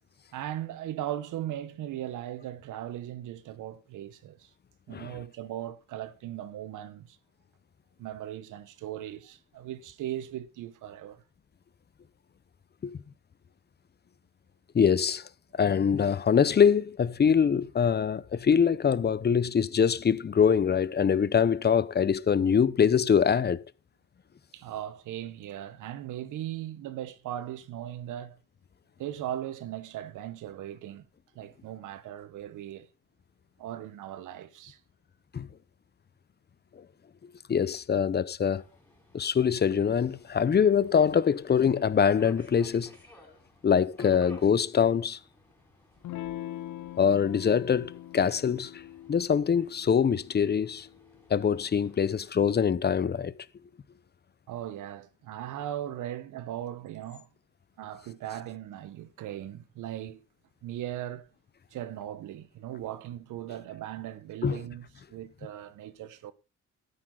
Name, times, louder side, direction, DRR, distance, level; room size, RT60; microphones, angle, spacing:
voice 1, 0.3-4.5 4.9-7.2 8.0-11.2 24.5-28.4 29.0-31.1 31.3-32.9 33.6-34.8 54.5-57.3 57.8-60.2 60.6-61.3 61.7-66.3, right 12 dB, 85° right, 1.3 m, -38 dB
voice 2, 14.7-15.3 15.5-23.6 35.3-35.5 36.8-36.9 37.5-38.6 39.1-43.0 43.6-45.2 47.0-48.8 49.1-50.9 51.3-53.4 64.4-64.6, left 7 dB, 35° left, 0.8 m, -24 dB
Subway metro underground, 38.5-52.3, equal, 5° left, 5.6 m, -58 dB
Electric guitar / Strum, 46.0-51.2, left 13 dB, 80° left, 1.1 m, -42 dB
13.0 x 10.0 x 3.9 m
cardioid pair, 90°, 30 cm